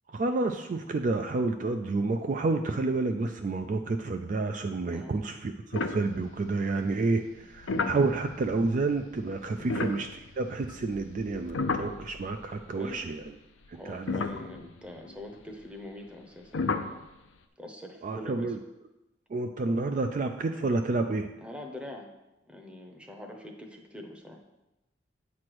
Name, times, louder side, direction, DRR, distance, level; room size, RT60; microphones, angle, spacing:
voice 1, 0.1-10.1 10.4-13.2 13.7-14.1 18.0-18.6 19.3-21.3, right 3 dB, 40° right, 6 dB, 0.3 m, -29 dB
voice 2, 4.9-5.3 9.6-9.8 12.8-13.1 13.7-17.0 17.6-18.6 21.4-22.1 22.4-24.4, left 1 dB, 5° right, 2 dB, 0.7 m, -44 dB
sound 1, 5.7-6.7 7.4-12.6 12.9-13.0 13.6-13.7 14.1-15.1 16.5-17.0, left 3 dB, 80° left, 0.5 m, -34 dB
8.5 x 3.2 x 6.0 m, 0.97 s
head